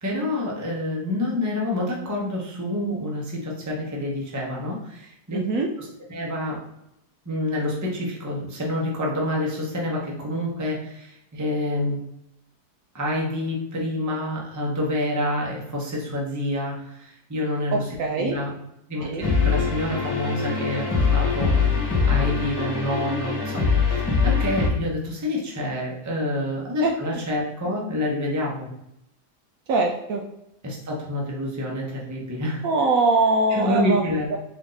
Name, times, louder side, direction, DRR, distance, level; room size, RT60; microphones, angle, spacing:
voice 1, 0.0-5.4 5.8-6.6 7.2-12.0 12.9-18.5 18.9-20.9 21.1-28.7 30.6-32.7 33.5-34.3, left 1 dB, 15° right, -3 dB, 0.7 m, -28 dB
voice 2, 5.3-5.7 17.7-18.3 19.0-19.3 26.8-26.9 29.7-30.2 32.6-34.0 34.3-34.4, right 3 dB, 70° right, 1 dB, 0.9 m, -22 dB
sound 1, 19.2-24.7, left 5 dB, 20° left, 1.5 m, -23 dB
4.4 x 2.7 x 3.9 m, 0.82 s
omnidirectional pair, 1.7 m